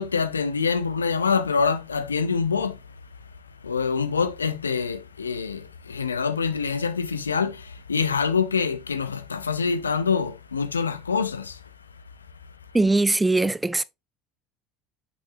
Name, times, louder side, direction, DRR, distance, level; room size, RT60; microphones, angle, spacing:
voice 1, 0.0-2.8 3.6-11.6, left 5 dB, 85° left, 0.4 m, -25 dB
voice 2, 12.7-13.8, right 2 dB, 10° right, 0.4 m, -21 dB
6.1 x 6.0 x 2.5 m
figure-of-eight pair, 65°, 0 cm